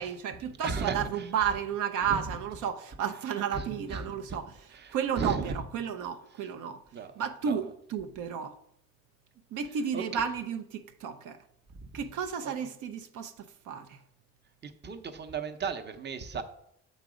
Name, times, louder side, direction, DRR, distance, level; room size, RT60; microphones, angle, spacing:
voice 1, 0.0-4.5 4.9-6.8 7.2-8.5 9.5-11.4 11.9-14.0, right 7 dB, 80° right, 0.6 m, -32 dB
voice 2, 0.6-1.3 2.0-2.2 3.5-4.1 4.7-5.6 6.9-7.1 7.5-7.6 9.9-10.2 11.8-11.9 12.4-12.5 14.6-16.4, right 5 dB, 35° right, 0.7 m, -35 dB
7.2 x 4.0 x 4.9 m
cardioid pair, 90°, 30 cm